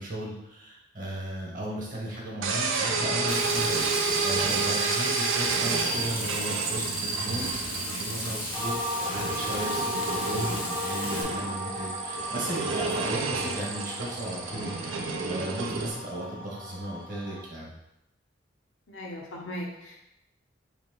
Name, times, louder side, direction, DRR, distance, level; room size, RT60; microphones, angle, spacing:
voice 1, 0.0-17.7, right 1 dB, 45° right, -3 dB, 1.1 m, -36 dB
sound 1, 2.4-15.9, right 4 dB, 85° right, 0.5 m, -30 dB
Frying (food), 3.3-11.2, left 2 dB, 45° left, 0.8 m, -37 dB
sound 2, 8.5-17.4, equal, 5° left, 0.5 m, -36 dB
voice 2, 18.9-20.0, equal, 75° left, -1 dB, 0.8 m, -38 dB
3.5 x 2.8 x 3.8 m, 0.86 s
head